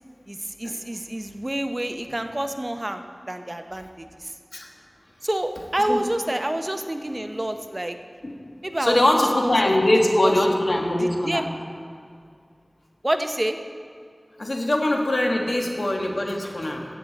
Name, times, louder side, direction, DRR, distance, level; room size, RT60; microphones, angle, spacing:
voice 1, 0.3-4.3 5.2-8.0 8.6-9.0 9.4-9.5 10.2-10.3 11.0-11.5 13.0-13.6, right 1 dB, 35° right, 7 dB, 0.6 m, -28 dB
voice 2, 8.8-11.4 14.4-16.8, left 1 dB, 75° left, 1 dB, 1.4 m, -22 dB
15.5 x 8.3 x 4.1 m, 2.2 s
wide cardioid pair, 45°, 0 cm